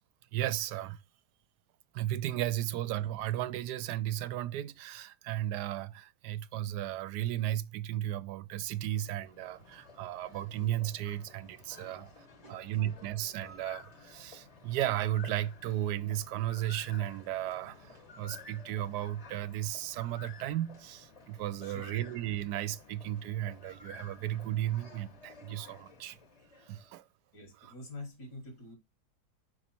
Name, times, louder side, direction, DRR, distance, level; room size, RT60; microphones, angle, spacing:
voice 1, 0.3-1.0 1.9-26.2 26.7-27.0, right 13 dB, 90° right, 1.2 m, -35 dB
sound 1, 8.6-27.0, left 4 dB, 30° left, 0.7 m, -53 dB
voice 2, 21.6-21.9 27.3-28.8, left 2 dB, 85° left, 2.8 m, -47 dB
5.1 x 4.7 x 4.3 m
omnidirectional pair, 1.7 m